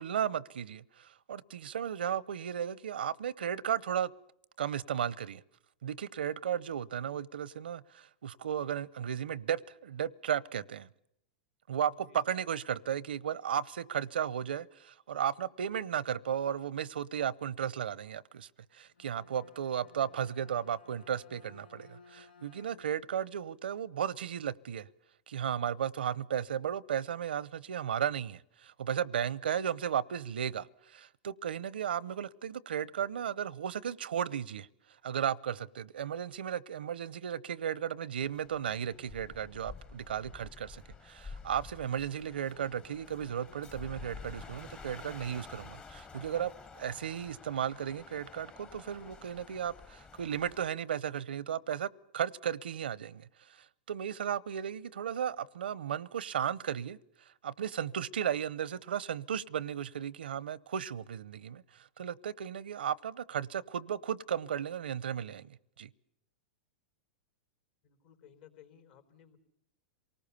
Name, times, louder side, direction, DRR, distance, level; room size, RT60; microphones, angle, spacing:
voice 1, 0.0-4.1 4.6-5.4 5.8-10.9 11.7-24.9 25.3-34.7 35.0-65.9, right 9 dB, 85° right, 0.8 m, -35 dB
voice 2, 11.9-12.3 67.8-69.4, left 9 dB, 60° left, 4.2 m, -58 dB
Bowed string instrument, 18.8-23.1, left 4 dB, 85° left, 1.5 m, -58 dB
sound 1, 38.2-50.7, left 4 dB, 20° left, 1.1 m, -50 dB
27.5 x 19.0 x 6.9 m
hypercardioid pair, 125°, 5 cm